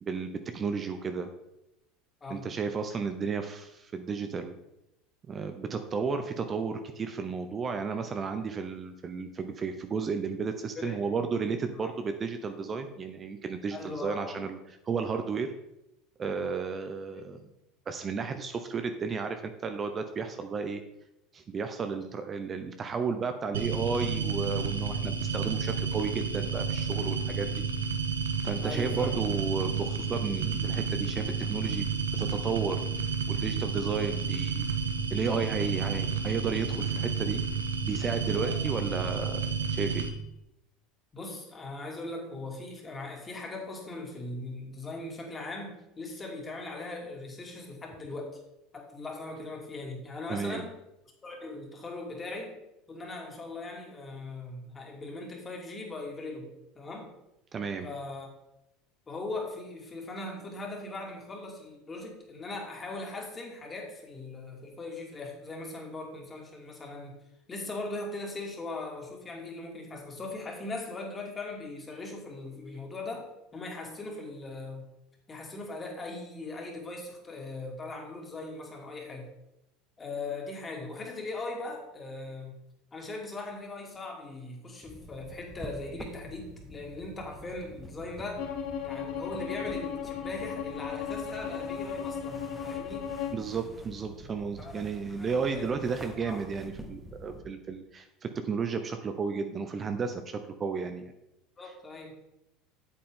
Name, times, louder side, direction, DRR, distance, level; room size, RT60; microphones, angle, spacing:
voice 1, 0.0-1.3 2.3-4.6 5.3-14.6 14.8-15.5 16.2-17.4 17.9-20.8 21.3-27.5 28.4-31.9 32.2-32.8 33.3-34.6 35.1-37.4 37.9-40.1 50.3-50.6 57.5-57.9 93.3-101.1, right 5 dB, 35° right, 7 dB, 0.8 m, -33 dB
voice 2, 13.7-14.4 28.6-29.1 38.5-38.6 41.1-48.4 48.7-50.7 51.2-52.6 52.9-56.5 56.7-57.1 57.8-58.3 59.1-67.2 67.5-74.8 75.3-79.3 80.0-82.5 82.9-88.4 88.8-93.1 94.6-96.4 101.6-102.1, left 2 dB, 25° left, 0 dB, 2.6 m, -40 dB
sound 1, 23.5-40.1, right 5 dB, 85° right, 0.8 m, -31 dB
sound 2, 84.8-97.4, equal, 5° right, 1.2 m, -47 dB
Bowed string instrument, 88.4-93.5, left 8 dB, 65° left, 1.4 m, -36 dB
8.4 x 7.7 x 3.8 m, 0.88 s
hypercardioid pair, 85°, 0 cm